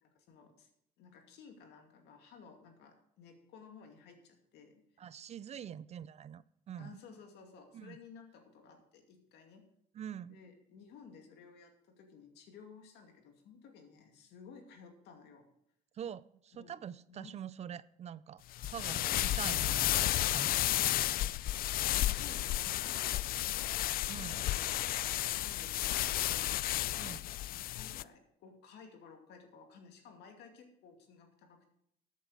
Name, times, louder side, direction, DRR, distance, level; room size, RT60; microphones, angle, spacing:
voice 1, 0.0-0.7 1.0-4.8 5.5-5.7 6.8-9.7 10.3-15.5 16.5-16.8 17.1-17.3 21.0-21.3 21.9-26.8 27.5-31.7, left 6 dB, 80° left, 4 dB, 2.4 m, -56 dB
voice 2, 5.0-7.0 7.7-8.0 9.9-10.4 15.9-21.1 24.1-24.4 27.0-27.2, right 9 dB, 40° right, 19 dB, 0.4 m, -45 dB
sound 1, 18.5-28.0, left 14 dB, 60° left, 0.4 m, -32 dB
13.5 x 8.4 x 4.9 m, 0.73 s
cardioid pair, 110°, 17 cm